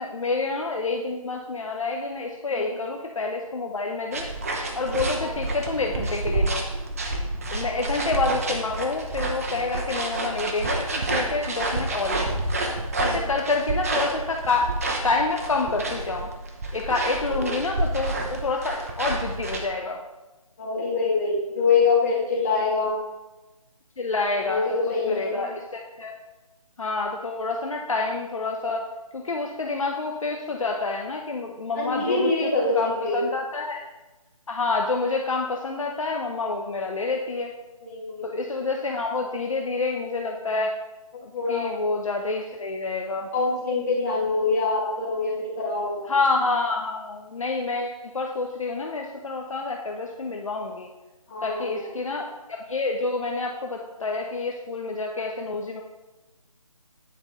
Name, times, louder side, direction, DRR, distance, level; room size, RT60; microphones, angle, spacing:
voice 1, 0.0-4.3 4.7-6.6 7.5-12.4 13.0-14.7 15.0-16.3 16.7-20.0 24.0-26.2 26.8-28.9 29.1-32.5 32.8-33.8 34.5-37.5 38.2-40.7 41.2-43.3 46.1-50.9 51.4-55.8, left 3 dB, 60° left, 1 dB, 0.7 m, -28 dB
sound 1, 4.1-19.7, right 2 dB, 25° right, 0.6 m, -29 dB
voice 2, 20.6-23.0 24.3-25.5 31.7-33.2 37.8-38.5 41.3-41.8 43.3-46.0 51.3-51.9, left 4 dB, 25° left, -6 dB, 2.2 m, -25 dB
9.3 x 4.4 x 3.8 m, 1.1 s
figure-of-eight pair, 160°, 18 cm